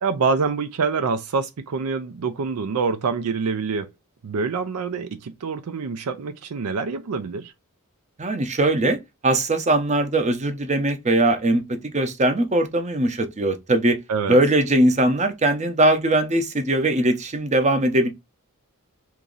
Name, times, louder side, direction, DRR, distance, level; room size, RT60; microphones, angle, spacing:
voice 1, 0.0-3.9 4.2-7.5 14.1-14.4, right 5 dB, 90° right, 0.5 m, -26 dB
voice 2, 8.2-9.0 9.2-14.0 14.3-18.1, right 1 dB, 30° right, 0.6 m, -20 dB
3.0 x 2.6 x 3.8 m
head